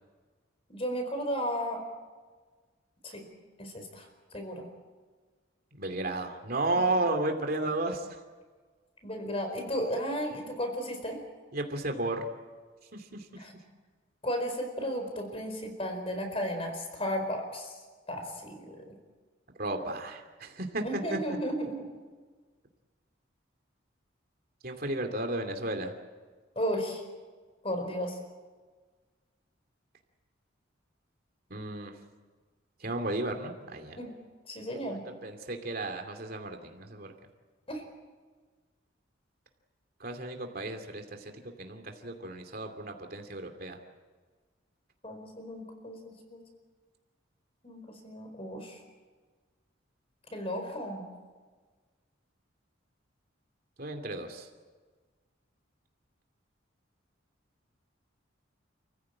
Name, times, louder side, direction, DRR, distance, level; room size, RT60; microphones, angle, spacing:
voice 1, 0.7-1.8 3.0-3.2 3.6-4.1 4.3-4.6 6.7-6.8 9.0-11.2 13.3-13.5 14.2-17.7 18.1-18.9 20.8-21.8 26.6-27.0 27.6-28.2 34.0-34.1 34.5-35.0 37.7-37.8 45.0-46.4 47.6-48.8 50.3-51.0, equal, 30° left, 5 dB, 4.5 m, -34 dB
voice 2, 5.8-8.1 11.5-12.3 12.9-13.3 19.6-20.8 21.1-21.2 24.6-25.9 31.5-31.9 32.8-34.0 34.7-37.1 40.0-41.3 41.6-43.8 53.8-54.5, right 2 dB, 50° right, 5 dB, 2.8 m, -33 dB
29.0 x 15.5 x 8.7 m, 1.4 s
head